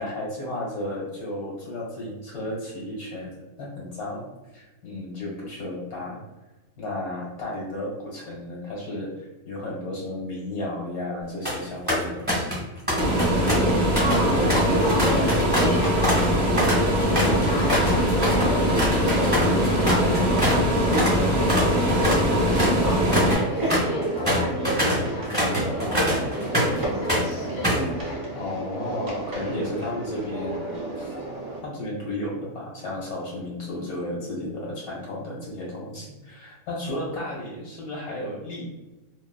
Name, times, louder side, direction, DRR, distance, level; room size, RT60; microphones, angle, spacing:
voice 1, 0.0-3.3 3.6-4.2 4.5-6.2 6.8-12.5 28.3-30.7 31.0-31.1 31.6-38.7, left 1 dB, 85° left, -5 dB, 1.7 m, -33 dB
sound 1, 11.2-11.6 11.9-12.6 12.9-20.6 20.9-21.2 21.5-26.8 27.1-27.9, equal, 10° right, 1.0 m, -25 dB
sound 2, 12.9-31.6, right 1 dB, 30° right, 0.4 m, -31 dB
sound 3, 13.0-23.4, equal, 55° right, 0.9 m, -22 dB
voice 2, 14.0-16.5 17.0-20.5 21.1-28.4, equal, 45° left, -4 dB, 0.8 m, -35 dB
3.1 x 2.1 x 2.2 m, 1.1 s
omnidirectional pair, 1.5 m